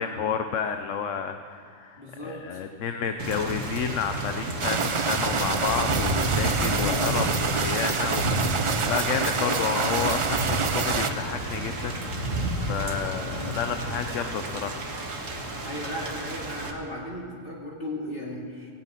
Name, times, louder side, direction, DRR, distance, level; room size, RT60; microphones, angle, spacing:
voice 1, 0.0-8.3 8.6-12.3 12.7-14.8, left 7 dB, 75° left, 7 dB, 1.1 m, -30 dB
voice 2, 2.0-2.6 6.8-7.1 9.1-9.5 13.3-13.6 15.6-18.7, left 1 dB, 50° left, -5 dB, 2.8 m, -36 dB
Thunder / Rain, 3.2-16.7, right 1 dB, 85° right, 2.0 m, -31 dB
sound 1, 4.6-11.1, right 5 dB, 40° right, 0.4 m, -27 dB
17.5 x 8.4 x 9.1 m, 2.3 s
omnidirectional pair, 1.3 m